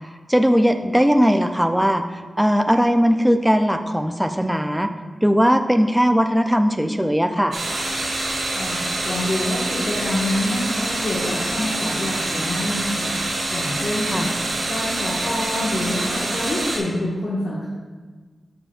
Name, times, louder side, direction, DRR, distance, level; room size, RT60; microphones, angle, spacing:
voice 1, 0.3-4.9 5.2-7.6 14.1-14.3, equal, 5° right, 7 dB, 0.4 m, -19 dB
sound 1, 7.5-16.8, right 2 dB, 65° right, 1.7 m, -26 dB
voice 2, 8.5-13.2 13.5-14.3 14.7-17.7, left 1 dB, 55° left, -7 dB, 1.5 m, -26 dB
14.5 x 5.1 x 2.4 m, 1.4 s
wide cardioid pair, 175°, 0 cm